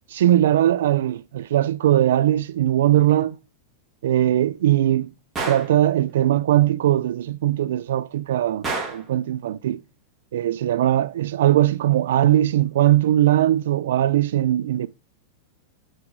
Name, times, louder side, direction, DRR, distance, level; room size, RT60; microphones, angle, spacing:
voice 1, 0.1-3.4 4.0-5.1 5.5-9.8 10.3-14.9, right 12 dB, 75° right, 0.4 m, -20 dB
Gunshot gunfire, 5.4-5.8 8.6-9.1, right 3 dB, 5° right, 1.5 m, -28 dB
8.9 x 4.0 x 6.5 m
supercardioid pair, 175°, 0 cm